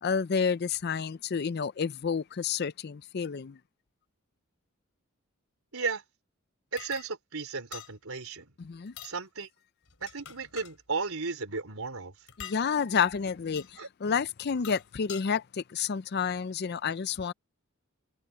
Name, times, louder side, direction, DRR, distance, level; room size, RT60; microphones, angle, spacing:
voice 1, 0.0-3.6 8.6-8.9 12.4-17.3, left 6 dB, 45° left, 0.4 m, -30 dB
voice 2, 6.7-8.5 9.0-9.5 10.0-12.1 13.8-13.9, right 4 dB, 75° right, 3.6 m, -34 dB
sound 1, 6.8-7.1 7.7-7.9 8.9-9.2 9.9-10.8 12.3-12.6 13.6-13.7 14.4-15.2, left 10 dB, 75° left, 3.1 m, -44 dB
head